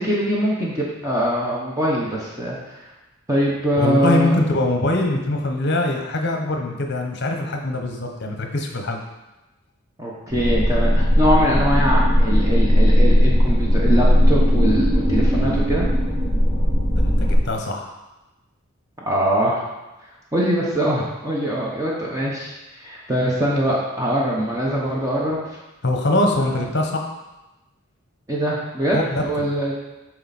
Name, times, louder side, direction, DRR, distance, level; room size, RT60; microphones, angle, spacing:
voice 1, 0.0-2.8 3.3-4.4 10.0-15.9 19.0-19.6 20.3-22.5 22.8-25.6 26.4-26.6 28.3-29.7, equal, 15° right, -4 dB, 0.9 m, -22 dB
voice 2, 3.8-9.0 16.9-17.9 25.8-27.1 28.9-29.2, left 1 dB, 50° left, 3 dB, 0.9 m, -22 dB
sound 1, 10.3-17.4, equal, 5° left, 2.0 m, -17 dB
7.7 x 4.6 x 4.1 m, 1.0 s
head